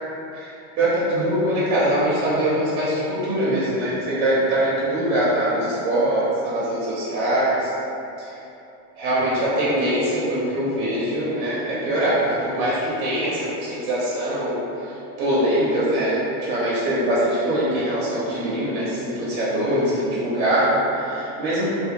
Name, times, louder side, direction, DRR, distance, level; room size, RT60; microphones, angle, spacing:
voice 1, 0.3-7.7 9.0-14.6 15.2-21.7, right 1 dB, 75° right, -9 dB, 0.8 m, -22 dB
2.6 x 2.1 x 2.8 m, 2.9 s
supercardioid pair, 165°, 43 cm